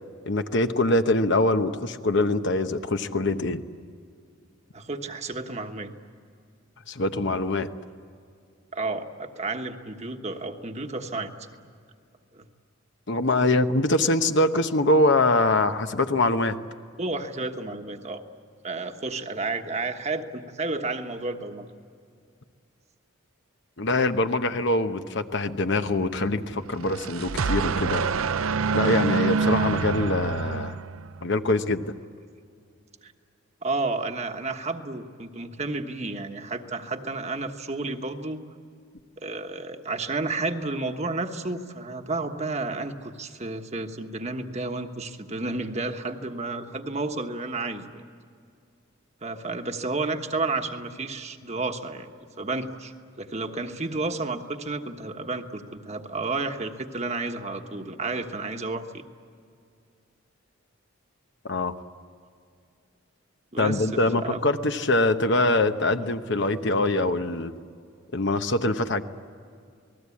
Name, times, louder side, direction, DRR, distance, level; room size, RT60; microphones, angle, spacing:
voice 1, 0.3-3.6 6.9-7.7 13.1-16.6 23.8-28.1 28.7-30.8 31.2-31.8 61.4-61.7 63.6-67.5 68.1-69.0, left 2 dB, 55° left, 8 dB, 1.0 m, -23 dB
voice 2, 4.7-5.9 8.7-11.7 12.3-12.5 17.0-18.2 18.6-21.7 33.0-33.1 33.6-38.4 39.2-48.0 49.2-52.1 52.4-59.0 63.5-64.4, right 3 dB, 30° right, 5 dB, 1.3 m, -31 dB
sound 1, 26.7-31.3, right 5 dB, 75° right, 0.6 m, -26 dB
28.5 x 20.0 x 8.6 m, 2.3 s
head